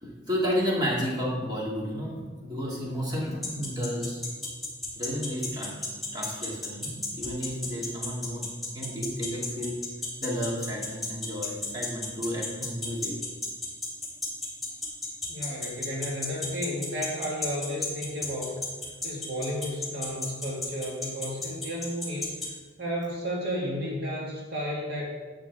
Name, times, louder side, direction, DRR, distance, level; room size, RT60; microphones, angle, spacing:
voice 1, 0.0-4.2 4.9-9.7 10.2-13.1, equal, 20° right, -4 dB, 2.5 m, -32 dB
sound 1, 3.4-22.5, left 3 dB, ahead, 3.4 m, -32 dB
voice 2, 15.3-18.6 19.0-22.4 22.8-25.1, equal, 55° right, -3 dB, 2.0 m, -33 dB
12.0 x 9.0 x 3.6 m, 1.4 s
head